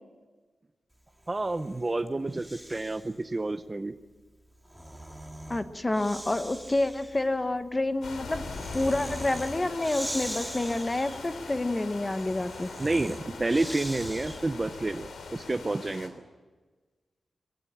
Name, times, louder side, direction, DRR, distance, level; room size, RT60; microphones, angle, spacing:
Breathing, 1.2-3.2 4.4-14.7, right 1 dB, 5° right, 2.0 m, -42 dB
voice 1, 1.3-3.9 12.8-16.1, right 2 dB, 20° right, 9 dB, 0.7 m, -29 dB
voice 2, 5.5-8.4 8.7-12.7, left 2 dB, 20° left, 9 dB, 1.1 m, -28 dB
sound 1, 8.0-16.1, left 4 dB, 85° left, 3.2 m, -41 dB
22.0 x 16.5 x 9.8 m, 1.3 s
wide cardioid pair, 155°, 0 cm